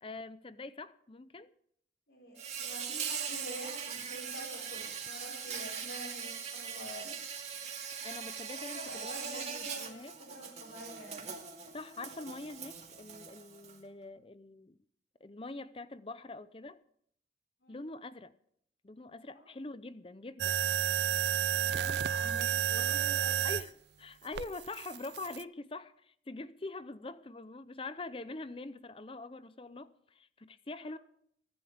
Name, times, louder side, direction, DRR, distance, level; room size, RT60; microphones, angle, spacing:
voice 1, 0.0-1.5 8.0-10.1 11.7-14.8 15.2-16.8 17.7-18.3 18.8-20.7 23.4-31.0, left 2 dB, 30° left, 0.6 m, -44 dB
voice 2, 2.1-7.2 8.5-11.3 17.6-17.8 21.5-23.4 30.8-30.9, equal, 80° left, 5.0 m, -47 dB
Insect, 2.4-13.8, right 7 dB, 40° right, 2.3 m, -41 dB
sound 1, 20.4-23.7 24.3-25.4, right 9 dB, 70° right, 0.4 m, -31 dB
23.5 x 11.0 x 3.5 m
head